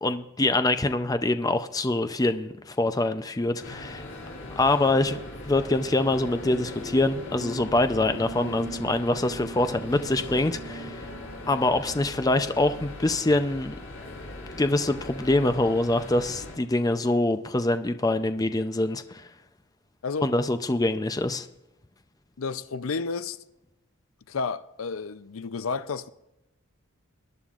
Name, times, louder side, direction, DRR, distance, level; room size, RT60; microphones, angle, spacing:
voice 1, 0.0-4.0 4.6-11.1 11.5-13.7 14.6-19.3 20.2-21.5, left 2 dB, 20° left, 0.5 m, -25 dB
sound 1, 3.6-16.6, left 2 dB, 70° left, 5.3 m, -40 dB
sound 2, 6.0-12.1, right 1 dB, 55° right, 0.7 m, -41 dB
voice 2, 22.4-23.4 24.3-26.1, left 4 dB, 85° left, 0.5 m, -31 dB
21.5 x 10.5 x 2.5 m
head